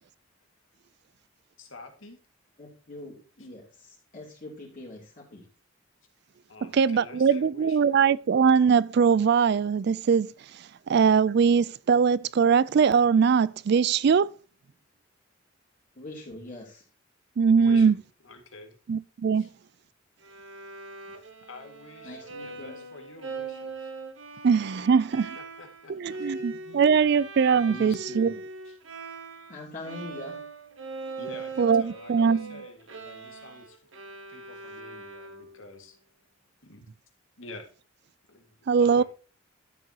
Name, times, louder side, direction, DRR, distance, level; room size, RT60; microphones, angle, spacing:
voice 1, 1.6-2.2 3.4-3.5 6.5-8.0 17.6-18.0 18.2-18.8 19.4-19.5 21.5-23.9 24.9-27.1 27.5-28.4 28.6-28.8 31.2-33.9 34.3-36.0 36.7-36.8 37.4-37.7 38.3-39.0, left 2 dB, 85° left, 2.1 m, -47 dB
voice 2, 2.6-5.4 15.9-16.8 22.0-22.8 29.5-30.4, left 2 dB, 40° left, 3.2 m, -43 dB
voice 3, 6.6-10.3 10.9-14.3 17.4-18.0 18.9-19.5 24.4-25.3 25.9-28.3 31.6-32.5 38.7-39.0, right 6 dB, 60° right, 0.4 m, -21 dB
Bowed string instrument, 20.2-29.6 29.8-35.7, right 3 dB, 75° right, 1.4 m, -41 dB
12.5 x 7.6 x 2.9 m
head